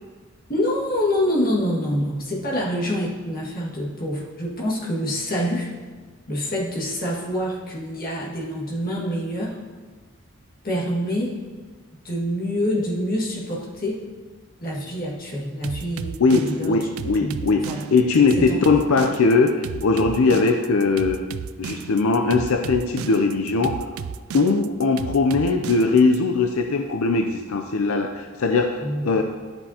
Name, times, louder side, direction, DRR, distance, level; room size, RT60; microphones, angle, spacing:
voice 1, 0.5-5.7 6.3-9.6 10.6-11.3 12.0-14.0 14.6-16.8 17.2-17.4 17.7-17.9 18.4-18.6 28.8-29.1, equal, 40° left, -4 dB, 1.8 m, -26 dB
sound 1, 15.6-26.2, right 7 dB, 80° right, 0.3 m, -34 dB
voice 2, 16.2-21.2 21.6-23.8 24.3-29.2, left 4 dB, 80° left, 5 dB, 0.5 m, -20 dB
11.5 x 7.9 x 2.9 m, 1.4 s
head